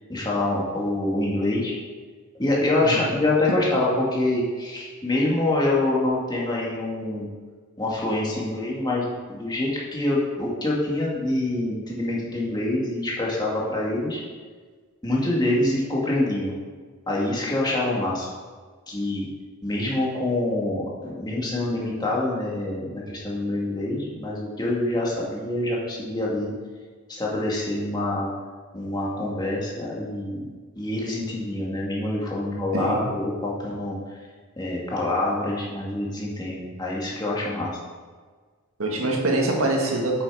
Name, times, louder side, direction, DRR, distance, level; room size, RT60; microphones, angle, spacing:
voice 1, 0.1-1.7 2.4-7.3 7.8-14.2 15.0-16.5 17.1-18.3 18.9-19.3 19.6-26.5 27.1-28.3 28.7-30.4 30.8-34.0 34.6-37.7, left 2 dB, 20° left, -4 dB, 2.0 m, -26 dB
voice 2, 32.7-33.1 38.8-40.2, right 2 dB, 80° right, -1 dB, 1.8 m, -24 dB
7.9 x 6.9 x 4.7 m, 1.5 s
head